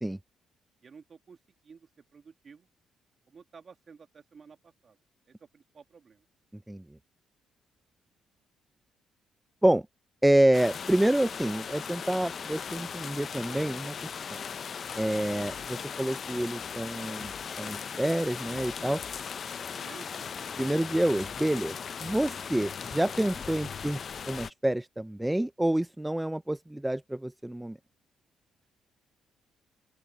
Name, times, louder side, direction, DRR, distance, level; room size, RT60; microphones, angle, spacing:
voice 1, 0.8-1.4 1.6-2.7 3.3-5.0 5.3-6.3 19.7-20.6, right 5 dB, 45° right, 2.0 m, -53 dB
voice 2, 10.2-14.4 14.9-17.3 17.6-19.0 20.6-24.0 24.3-27.8, right 1 dB, 10° right, 0.5 m, -28 dB
sound 1, 10.5-24.5, left 7 dB, 50° left, 0.5 m, -38 dB
sound 2, 15.4-15.8 16.3-16.7 17.2-17.6 18.0-19.3 19.8-22.5, left 10 dB, 75° left, 1.9 m, -53 dB
open air
cardioid pair, 90°, 0 cm